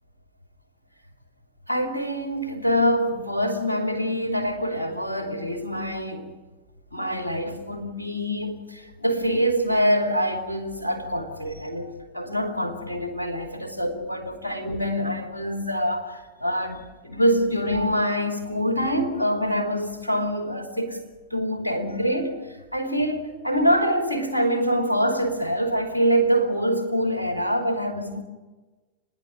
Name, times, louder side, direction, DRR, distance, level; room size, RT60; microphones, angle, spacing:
voice 1, 1.7-6.3 6.9-21.0 21.3-28.2, equal, 85° left, 3.0 m, -25 dB
30.0 x 11.0 x 10.0 m
figure-of-eight pair, 90°, 0 cm